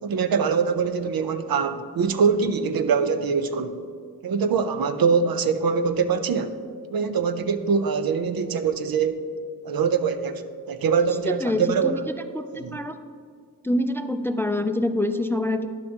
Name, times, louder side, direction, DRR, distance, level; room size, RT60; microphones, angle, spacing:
voice 1, 0.0-3.8 4.2-6.5 6.9-9.2 9.6-12.0 12.6-12.8, right 5 dB, 70° right, 10 dB, 0.5 m, -23 dB
voice 2, 11.2-12.0 12.3-12.9 13.6-15.7, left 1 dB, 5° left, 9 dB, 0.3 m, -25 dB
10.0 x 6.4 x 2.8 m, 2.1 s
cardioid pair, 50°, 36 cm